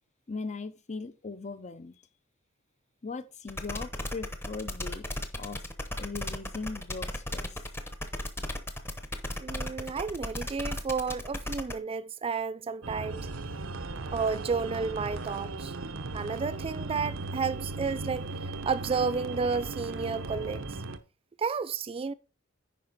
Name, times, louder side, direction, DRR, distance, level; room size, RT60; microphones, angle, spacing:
voice 1, 0.3-1.9 3.0-5.1 5.4-5.6 6.0-7.6, left 4 dB, 35° left, 0.7 m, -39 dB
sound 1, 3.5-11.7, left 1 dB, 10° left, 0.9 m, -35 dB
voice 2, 9.4-13.3 14.1-15.7 16.1-20.7 21.4-22.1, right 5 dB, 30° right, 0.3 m, -32 dB
sound 2, 12.8-21.0, right 3 dB, 75° right, 0.8 m, -37 dB
9.2 x 5.4 x 4.0 m
head